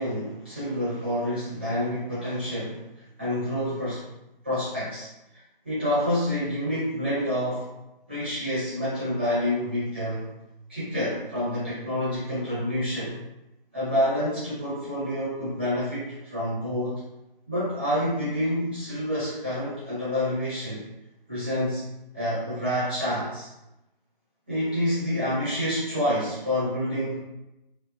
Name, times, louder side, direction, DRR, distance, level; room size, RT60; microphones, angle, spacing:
voice 1, 0.0-2.9 3.2-4.1 4.4-5.1 5.6-7.7 8.1-10.3 10.7-13.2 13.7-17.0 17.5-20.8 21.3-23.5 24.5-27.2, equal, 10° right, -13 dB, 0.6 m, -28 dB
2.7 x 2.0 x 2.5 m, 0.91 s
figure-of-eight pair, 165°, 29 cm